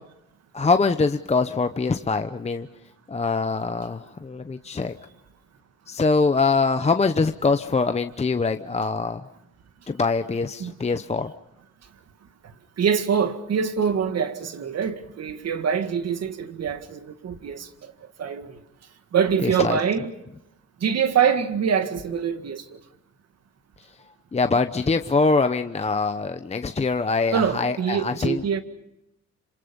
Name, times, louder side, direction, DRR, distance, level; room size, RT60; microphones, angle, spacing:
voice 1, 0.5-2.7 3.1-4.9 5.9-9.3 9.9-11.3 19.4-19.8 24.3-28.4, left 4 dB, 20° left, 0.9 m, -23 dB
voice 2, 12.8-17.9 18.2-18.6 19.1-20.1 20.8-22.8 27.3-28.6, right 7 dB, 55° right, 2.0 m, -24 dB
27.0 x 26.5 x 5.3 m
cardioid pair, 90°, 30 cm